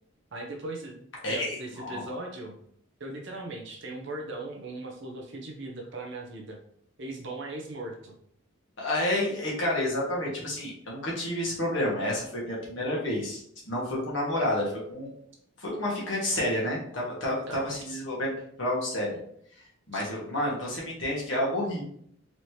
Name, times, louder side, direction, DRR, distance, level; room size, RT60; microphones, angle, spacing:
voice 1, 0.3-2.6 3.0-6.6 7.0-8.1 17.5-17.6, right 2 dB, 60° right, 1 dB, 0.7 m, -38 dB
voice 2, 1.2-2.0 8.8-15.1 15.6-18.3 18.6-19.2 19.9-21.8, left 1 dB, 65° left, -4 dB, 1.5 m, -30 dB
4.1 x 3.0 x 3.2 m, 0.67 s
head